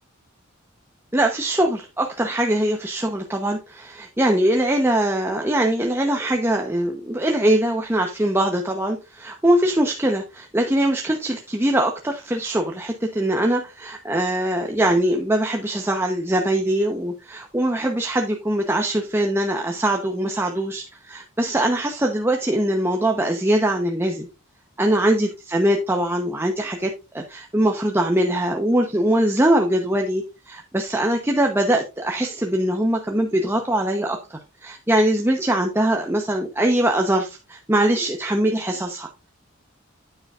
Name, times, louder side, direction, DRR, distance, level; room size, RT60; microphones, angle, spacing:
voice 1, 1.1-24.3 24.8-39.3, right 1 dB, 10° right, 0.9 m, -22 dB
9.5 x 9.0 x 2.5 m
head